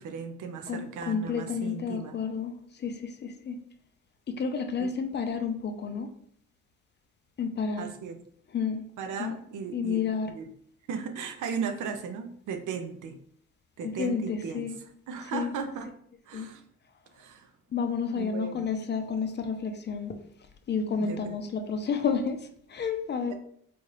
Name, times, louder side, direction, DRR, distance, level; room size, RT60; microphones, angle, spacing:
voice 1, 0.0-2.2 4.8-4.9 7.8-8.2 9.0-10.0 10.3-10.5 10.9-13.2 13.8-14.7 15.1-15.9 16.3-16.6 17.1-17.5 18.1-18.6 21.0-21.4 23.3-23.4, right 6 dB, 80° right, 6 dB, 0.6 m, -36 dB
voice 2, 0.7-3.6 4.3-6.1 7.4-7.9 8.5-8.8 9.2-9.4 9.7-10.3 13.8-14.8 15.3-15.5 16.3-16.5 17.7-20.2 20.7-23.3, left 5 dB, 35° left, 7 dB, 0.5 m, -31 dB
4.2 x 2.4 x 3.2 m, 0.65 s
cardioid pair, 90°, 30 cm